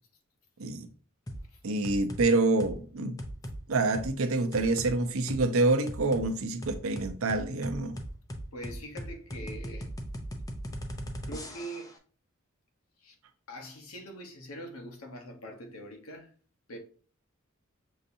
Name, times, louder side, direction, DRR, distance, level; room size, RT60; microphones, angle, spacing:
sound 1, 1.3-1.5 1.8-2.2 2.6-2.8 3.2-3.6 3.9-4.1 4.5-4.9 5.3-5.4 5.9-6.3 6.6-11.9, equal, 15° left, 0.5 m, -38 dB
voice 1, 1.6-3.2 3.7-8.0, right 2 dB, 75° right, 0.6 m, -27 dB
voice 2, 8.5-9.9 11.2-11.9 13.0-13.2 13.5-16.3 16.7-16.8, equal, 90° left, 1.0 m, -43 dB
6.4 x 2.8 x 2.6 m
head